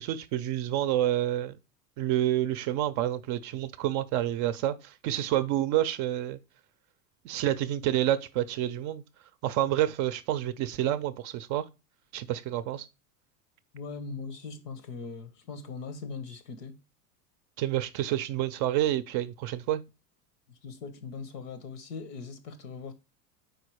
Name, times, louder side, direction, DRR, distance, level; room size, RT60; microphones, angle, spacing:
voice 1, 0.0-1.6 2.0-6.4 7.2-9.0 9.4-11.6 12.1-12.9 17.6-19.8, right 13 dB, 40° right, 0.5 m, -28 dB
voice 2, 13.7-16.8 20.5-22.9, left 4 dB, 90° left, 1.2 m, -40 dB
4.9 x 4.1 x 4.7 m
hypercardioid pair, 110°, 46 cm